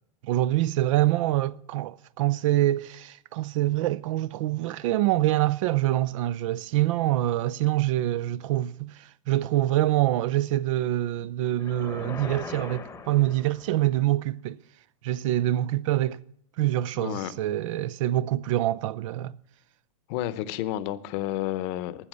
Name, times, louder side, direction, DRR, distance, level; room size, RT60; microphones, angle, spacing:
voice 1, 0.2-14.6 15.0-16.2 16.6-19.4, right 15 dB, 65° right, 0.5 m, -25 dB
sound 1, 11.6-13.9, left 4 dB, 15° left, 0.9 m, -40 dB
voice 2, 17.0-17.3 20.1-22.1, left 13 dB, 50° left, 0.8 m, -31 dB
14.0 x 7.1 x 7.8 m
hypercardioid pair, 130°, 18 cm